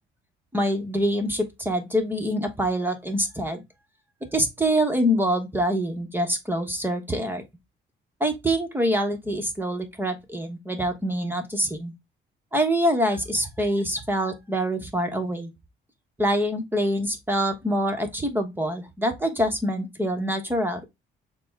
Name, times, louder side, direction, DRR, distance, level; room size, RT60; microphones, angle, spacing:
voice 1, 0.5-3.6 4.3-7.4 8.2-11.9 12.5-15.5 16.2-20.9, equal, 10° right, 1.1 m, -25 dB
6.7 x 2.3 x 3.5 m
cardioid pair, 90°, 20 cm